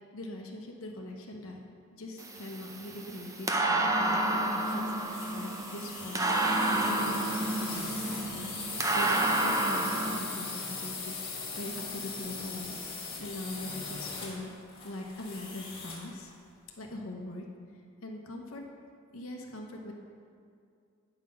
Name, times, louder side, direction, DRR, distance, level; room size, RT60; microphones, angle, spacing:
voice 1, 0.1-1.6 2.0-14.5 14.8-16.3 16.8-17.5 17.7-18.6 19.1-19.9, left 1 dB, 85° left, 1 dB, 0.9 m, -42 dB
sound 1, 2.2-10.2, right 2 dB, 15° right, 0.6 m, -30 dB
sound 2, 4.6-16.1, left 4 dB, 30° left, 1.7 m, -40 dB
9.1 x 5.8 x 5.1 m, 2.3 s
head